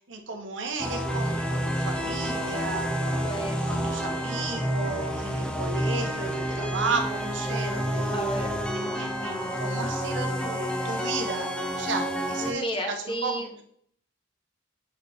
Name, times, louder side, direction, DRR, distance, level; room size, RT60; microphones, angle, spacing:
voice 1, 0.1-3.3 3.7-8.2 8.7-13.4, right 3 dB, 75° right, 4 dB, 1.0 m, -34 dB
sound 1, 0.8-12.5, equal, 5° left, 0.6 m, -29 dB
voice 2, 3.2-3.8 8.1-8.6 12.4-13.5, equal, 25° left, 3 dB, 1.0 m, -33 dB
6.8 x 4.3 x 3.4 m, 0.65 s
head